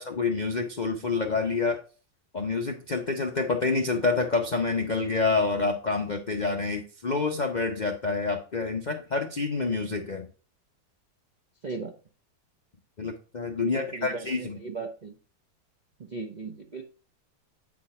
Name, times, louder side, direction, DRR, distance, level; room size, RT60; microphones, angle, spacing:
voice 1, 0.0-1.8 2.3-10.3 13.0-14.6, left 4 dB, 60° left, 4 dB, 0.4 m, -27 dB
voice 2, 11.6-11.9 13.6-15.2 16.0-16.8, right 4 dB, 50° right, 2 dB, 0.5 m, -37 dB
8.6 x 4.4 x 4.2 m, 0.36 s
omnidirectional pair, 2.0 m